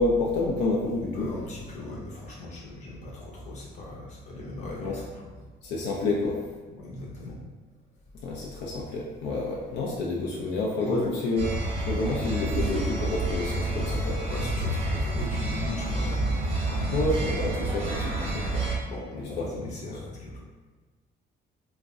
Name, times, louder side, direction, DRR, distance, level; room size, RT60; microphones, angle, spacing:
voice 1, 0.0-1.3 4.8-5.0 5.6-6.4 8.2-11.5 11.9-14.2 16.9-18.6 19.2-20.0, left 2 dB, 75° left, -2 dB, 0.5 m, -29 dB
voice 2, 1.1-5.3 6.7-7.4 10.8-11.1 14.3-16.3 16.6-16.9 18.8-20.4, left 2 dB, 40° left, -4 dB, 0.8 m, -38 dB
sound 1, 11.4-18.8, right 1 dB, 35° right, 0.6 m, -28 dB
2.5 x 2.1 x 3.5 m, 1.3 s
cardioid pair, 160°, 19 cm